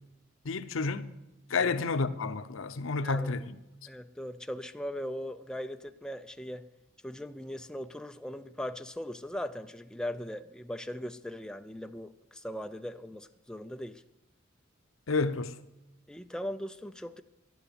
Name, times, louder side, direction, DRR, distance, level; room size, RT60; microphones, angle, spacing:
voice 1, 0.4-1.1 1.5-3.5 15.1-15.6, left 4 dB, 80° left, 0.7 m, -30 dB
voice 2, 3.9-6.7 7.0-14.0 16.1-17.2, equal, 5° left, 0.4 m, -39 dB
11.5 x 9.4 x 7.0 m
head